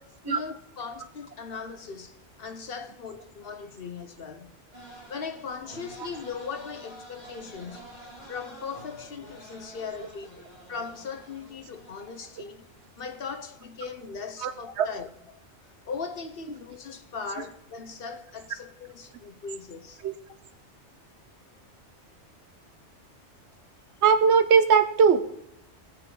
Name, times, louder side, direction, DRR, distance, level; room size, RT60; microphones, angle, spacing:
voice 1, 0.0-4.6 5.1-8.0 8.3-10.3 10.7-12.6 13.0-15.4 15.9-20.0, left 5 dB, 55° left, 1.0 m, -39 dB
sound 1, 4.7-12.9, right 1 dB, 40° left, 2.4 m, -49 dB
voice 2, 14.4-14.9 20.0-20.1 24.0-25.2, right 6 dB, 70° right, 1.1 m, -20 dB
16.5 x 7.7 x 3.8 m
omnidirectional pair, 1.2 m